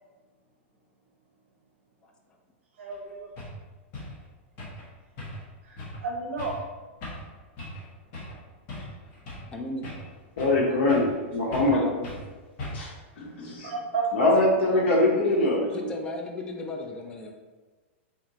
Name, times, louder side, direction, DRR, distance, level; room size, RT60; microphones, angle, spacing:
voice 1, 2.8-3.3 5.6-6.6 13.6-14.3 14.7-14.8, right 4 dB, 75° right, 0 dB, 0.7 m, -32 dB
sound 1, 2.9-3.0 3.4-3.6 3.9-4.2 4.6-4.9 5.2-5.5 5.8-6.0 6.4-6.6 7.0-7.3 7.6-7.8 8.1-8.4 8.7-9.5 9.8-10.6 10.9-11.2 11.5-11.8 12.0-12.2 12.6-13.0, left 1 dB, 35° left, 1.2 m, -38 dB
voice 2, 9.5-9.9 11.7-12.1 15.7-17.3, left 2 dB, 15° left, 2 dB, 0.4 m, -35 dB
voice 3, 10.4-11.8 12.7-12.9 13.2-13.7 14.1-15.9, left 2 dB, 75° left, -4 dB, 0.8 m, -23 dB
4.2 x 3.0 x 2.7 m, 1.3 s
supercardioid pair, 160°, 7 cm